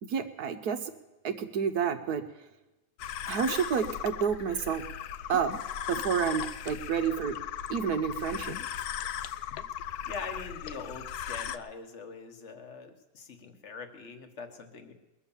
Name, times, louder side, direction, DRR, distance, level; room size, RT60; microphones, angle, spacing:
voice 1, 0.0-0.9 1.2-2.2 3.3-4.8 5.3-5.5 5.9-7.4 7.7-8.6, right 7 dB, 65° right, 8 dB, 1.1 m, -29 dB
sound 1, 3.0-11.6, left 9 dB, 70° left, 0.9 m, -37 dB
voice 2, 10.0-14.9, left 4 dB, 40° left, 7 dB, 1.4 m, -43 dB
21.5 x 7.2 x 6.9 m, 1.0 s
omnidirectional pair, 2.2 m